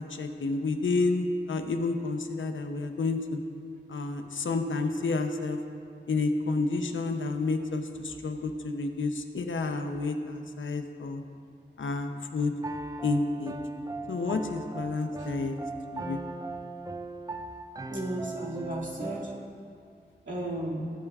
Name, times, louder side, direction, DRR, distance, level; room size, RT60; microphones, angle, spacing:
voice 1, 0.0-3.4 3.9-5.6 6.1-11.2 11.8-12.5 13.0-13.5 14.1-15.6 15.9-16.2, left 3 dB, 80° left, 6 dB, 0.6 m, -30 dB
Piano, 12.6-19.5, right 2 dB, 20° right, 0.4 m, -38 dB
voice 2, 17.9-19.3 20.3-20.8, right 1 dB, 70° right, -7 dB, 2.3 m, -34 dB
14.5 x 8.6 x 2.4 m, 2.4 s
wide cardioid pair, 75°, 20 cm